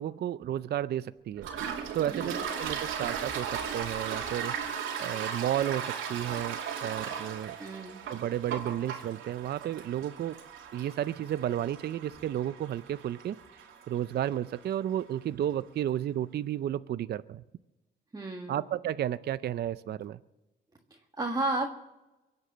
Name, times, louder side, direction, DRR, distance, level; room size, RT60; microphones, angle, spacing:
voice 1, 0.0-1.5 1.9-4.5 5.0-7.6 8.1-10.4 10.7-17.4 18.5-20.2, right 11 dB, 55° right, 15 dB, 0.5 m, -32 dB
Toilet flush, 1.4-14.8, right 7 dB, 85° right, 2.6 m, -37 dB
voice 2, 2.1-2.4 7.6-8.0 18.1-18.5 20.9-21.7, right 2 dB, 20° right, 1 dB, 1.8 m, -33 dB
23.0 x 8.2 x 7.6 m, 1.0 s
cardioid pair, 90°, 20 cm